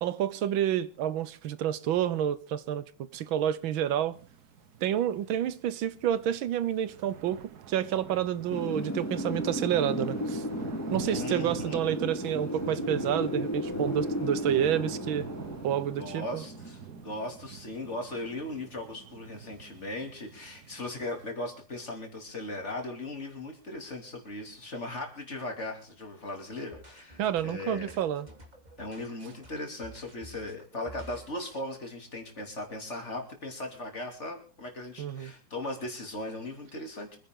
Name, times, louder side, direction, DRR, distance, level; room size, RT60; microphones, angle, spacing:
voice 1, 0.0-2.8 3.1-4.2 4.8-10.4 10.9-15.3 15.6-16.4 27.2-28.3 35.0-35.3, right 10 dB, 70° right, 1.5 m, -29 dB
sound 1, 4.1-21.3, right 8 dB, 55° right, 1.3 m, -45 dB
Wind, 8.5-17.2, left 1 dB, 10° left, 1.8 m, -34 dB
voice 2, 11.0-11.8 16.0-27.9 28.8-37.2, left 2 dB, 30° left, 3.2 m, -38 dB
sound 2, 26.6-31.6, right 1 dB, 20° right, 3.1 m, -51 dB
25.0 x 10.0 x 3.8 m
omnidirectional pair, 2.4 m